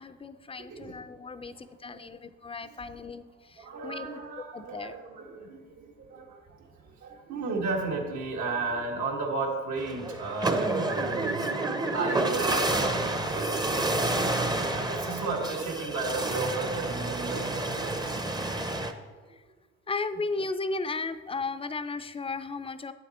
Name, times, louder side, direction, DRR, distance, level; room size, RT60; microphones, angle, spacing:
voice 1, 0.0-3.2 3.8-4.1 4.5-4.9 19.9-22.9, left 3 dB, 20° left, 11 dB, 0.5 m, -35 dB
voice 2, 0.6-1.0 1.5-2.1 2.6-3.1 3.6-14.3 14.9-18.2 18.5-18.8, right 3 dB, 75° right, 0 dB, 1.9 m, -35 dB
sound 1, 9.8-18.9, right 2 dB, 15° right, 0.7 m, -29 dB
9.0 x 7.5 x 4.3 m, 1.4 s
cardioid pair, 90°, 30 cm